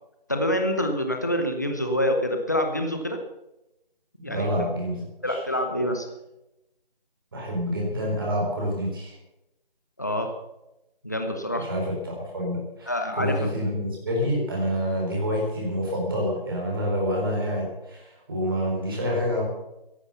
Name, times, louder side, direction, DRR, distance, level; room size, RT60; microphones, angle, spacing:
voice 1, 0.3-3.2 4.2-4.7 5.2-6.1 10.0-10.3 11.0-11.7 12.9-13.5, left 1 dB, 20° left, 5 dB, 0.8 m, -26 dB
voice 2, 4.2-4.9 5.2-5.4 7.3-9.1 11.6-19.4, equal, 25° right, -2 dB, 4.1 m, -27 dB
14.0 x 11.5 x 6.9 m, 0.92 s
figure-of-eight pair, 165°, 29 cm